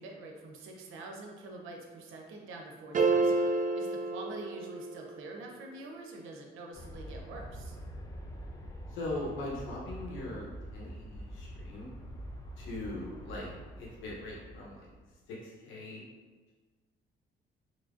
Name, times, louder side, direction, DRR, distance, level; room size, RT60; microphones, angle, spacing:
voice 1, 0.0-7.8, right 2 dB, 85° right, 1 dB, 0.7 m, -46 dB
sound 1, 2.9-5.2, right 3 dB, 40° right, 0.4 m, -29 dB
Aircraft, 6.7-15.1, equal, 15° left, 0.5 m, -45 dB
voice 2, 8.9-11.9 12.6-13.5 13.8-14.9 15.4-16.0, left 2 dB, 85° left, -4 dB, 0.9 m, -40 dB
3.8 x 3.1 x 2.5 m, 1.3 s
cardioid pair, 90°, 20 cm